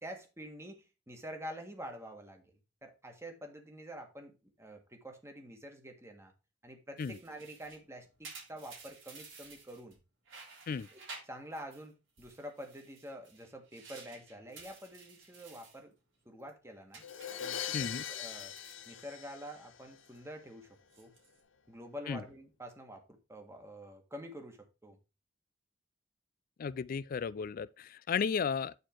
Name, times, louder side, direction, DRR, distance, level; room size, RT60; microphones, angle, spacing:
voice 1, 0.0-2.4 2.8-6.3 6.6-10.0 10.9-15.9 16.2-17.0 17.4-18.5 18.8-20.7 21.0-21.1 21.7-25.0, equal, 15° right, 1.6 m, -47 dB
sound 1, 7.0-10.0 10.3-11.9 12.2-15.8 16.2-16.5 16.9-19.5 19.8-20.2 20.8-21.4, right 4 dB, 90° right, 3.4 m, -54 dB
Crash cymbal, 17.0-20.0, left 10 dB, 90° left, 0.7 m, -41 dB
voice 2, 17.7-18.0 22.1-22.2 26.6-28.7, left 6 dB, 50° left, 0.3 m, -34 dB
9.5 x 4.5 x 4.5 m
head